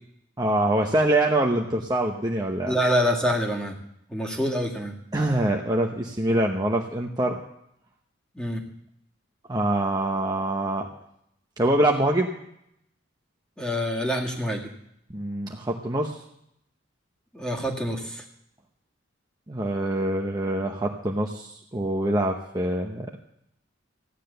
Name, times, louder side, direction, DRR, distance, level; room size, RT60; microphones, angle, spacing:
voice 1, 0.4-2.7 5.1-7.4 9.5-10.9 11.6-12.3 15.1-16.2 19.5-23.1, right 1 dB, 20° right, 1 dB, 0.9 m, -24 dB
voice 2, 2.7-3.8 4.1-4.9 8.3-8.6 13.6-14.7 17.3-18.2, equal, 5° left, 0 dB, 2.0 m, -26 dB
15.5 x 10.0 x 6.8 m, 0.75 s
head